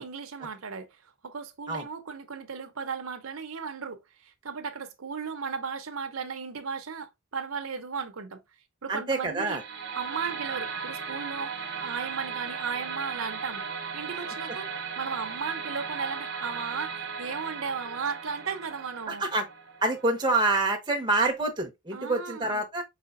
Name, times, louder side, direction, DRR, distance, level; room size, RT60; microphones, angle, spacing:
voice 1, 0.0-8.4 8.8-9.6 9.9-11.5 11.8-13.7 13.9-14.7 15.0-19.2 21.9-22.6, right 5 dB, 90° right, 0.7 m, -35 dB
voice 2, 8.9-9.6 19.1-19.5 19.8-22.8, right 2 dB, 20° right, 0.9 m, -26 dB
sound 1, 9.4-20.5, right 6 dB, 60° right, 0.9 m, -37 dB
4.9 x 3.5 x 2.5 m
head